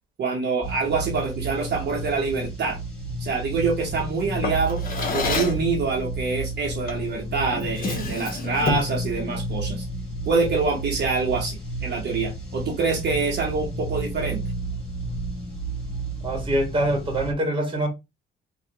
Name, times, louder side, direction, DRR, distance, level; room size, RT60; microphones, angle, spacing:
voice 1, 0.2-2.8 3.2-4.8 5.1-9.8 10.2-14.4, right 4 dB, 55° right, 1.0 m, -26 dB
sound 1, 0.6-17.3, right 2 dB, 5° left, 1.7 m, -32 dB
Drawer open or close, 4.4-5.7 6.9-7.1 7.5-9.0, left 3 dB, 45° left, 1.0 m, -28 dB
voice 2, 16.2-17.9, right 1 dB, 25° right, 1.3 m, -24 dB
3.4 x 2.4 x 2.8 m
cardioid pair, 100°, 21 cm